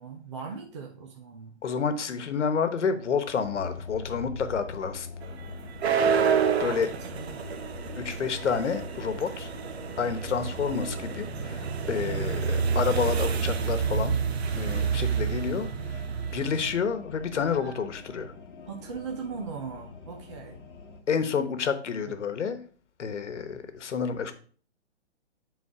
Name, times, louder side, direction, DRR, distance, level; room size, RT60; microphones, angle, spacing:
voice 1, 0.0-1.5 6.6-7.4 17.4-17.9 18.7-20.6, right 5 dB, 25° right, 1 dB, 0.6 m, -39 dB
voice 2, 1.6-5.1 6.6-6.9 8.0-9.5 10.0-14.2 14.5-16.0 16.3-18.3 21.1-22.6 23.0-24.3, left 6 dB, 90° left, 10 dB, 1.2 m, -29 dB
sound 1, 3.4-21.0, left 4 dB, 50° left, 1.2 m, -43 dB
sound 2, 5.2-16.7, right 6 dB, 65° right, 0.9 m, -29 dB
7.3 x 4.1 x 4.8 m, 0.43 s
hypercardioid pair, 170°, 35 cm